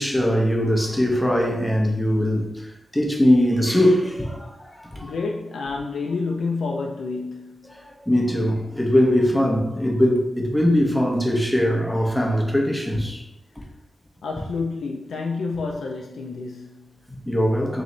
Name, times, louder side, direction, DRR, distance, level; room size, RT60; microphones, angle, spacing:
voice 1, 0.0-5.1 7.7-13.2 17.1-17.8, equal, 5° left, 0.8 m, -21 dB
voice 2, 4.7-7.9 13.6-13.7 14.2-17.0, left 4 dB, 90° left, 0.4 m, -29 dB
3.1 x 3.0 x 3.9 m
cardioid pair, 70°, 0 cm